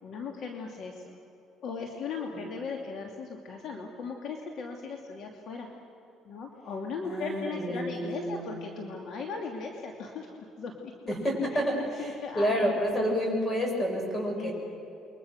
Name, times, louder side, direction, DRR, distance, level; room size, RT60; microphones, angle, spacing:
voice 1, 0.0-1.1 1.6-5.7 6.2-11.1 11.5-11.6 12.0-12.7 14.4-14.5, left 4 dB, 60° left, 2 dB, 2.6 m, -38 dB
voice 2, 7.0-8.5 11.1-14.5, equal, 20° left, 1 dB, 7.6 m, -29 dB
29.0 x 23.0 x 6.5 m, 2.7 s
cardioid pair, 115°, 0 cm